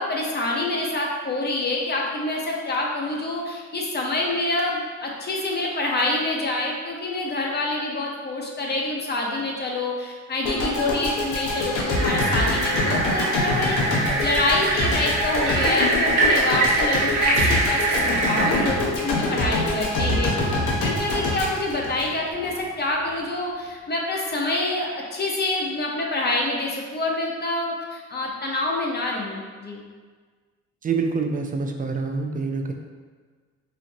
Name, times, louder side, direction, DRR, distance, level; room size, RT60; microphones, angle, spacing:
voice 1, 0.0-20.5 20.8-29.8, left 2 dB, 35° left, -1 dB, 0.8 m, -27 dB
sound 1, 10.4-22.7, left 2 dB, 85° left, 0.9 m, -25 dB
sound 2, 11.9-18.6, right 2 dB, 90° right, 0.9 m, -24 dB
voice 2, 30.8-32.7, right 4 dB, 30° right, 3 dB, 0.4 m, -26 dB
4.5 x 2.5 x 2.6 m, 1.5 s
cardioid pair, 90°, 30 cm